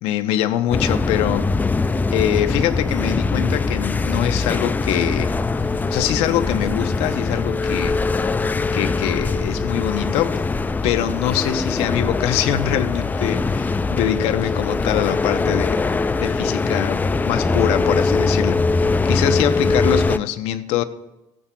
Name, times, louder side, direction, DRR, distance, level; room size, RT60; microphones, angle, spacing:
voice 1, 0.0-1.5 2.1-5.3 5.9-8.0 8.7-10.4 10.8-15.9 16.2-20.8, left 12 dB, 80° left, 0.7 m, -23 dB
sound 1, 0.7-20.2, left 3 dB, 15° left, 0.4 m, -22 dB
15.0 x 8.6 x 2.2 m
supercardioid pair, 90°, 10 cm